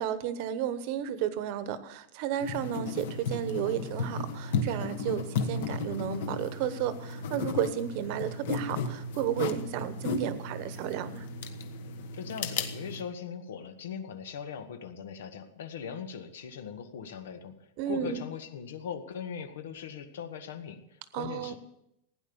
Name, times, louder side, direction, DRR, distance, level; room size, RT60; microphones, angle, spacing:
voice 1, 0.0-11.3 17.8-18.2 21.1-21.5, right 9 dB, 35° right, 13 dB, 1.0 m, -33 dB
sound 1, 2.4-13.0, left 4 dB, 55° left, 1.3 m, -34 dB
voice 2, 12.1-17.5 17.9-21.5, left 7 dB, 85° left, 8 dB, 1.7 m, -40 dB
16.5 x 9.9 x 7.1 m, 0.83 s
supercardioid pair, 180°, 0 cm